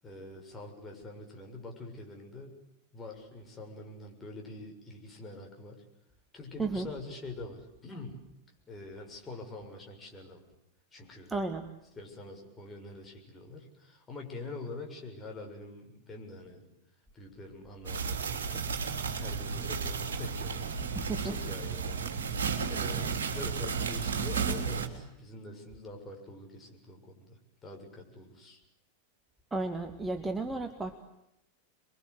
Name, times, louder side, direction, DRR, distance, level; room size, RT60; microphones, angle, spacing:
voice 1, 0.0-2.5 2.9-5.8 6.3-8.2 8.7-10.4 10.9-11.3 12.0-16.7 17.1-18.8 19.1-22.1 22.7-28.6, left 2 dB, 15° left, 1 dB, 7.0 m, -45 dB
voice 2, 11.3-11.7 21.0-21.4 29.5-31.0, right 3 dB, 10° right, 6 dB, 1.9 m, -33 dB
sound 1, 17.8-24.9, right 6 dB, 65° right, 3.4 m, -33 dB
28.5 x 23.0 x 8.2 m, 0.84 s
figure-of-eight pair, 90°, 0 cm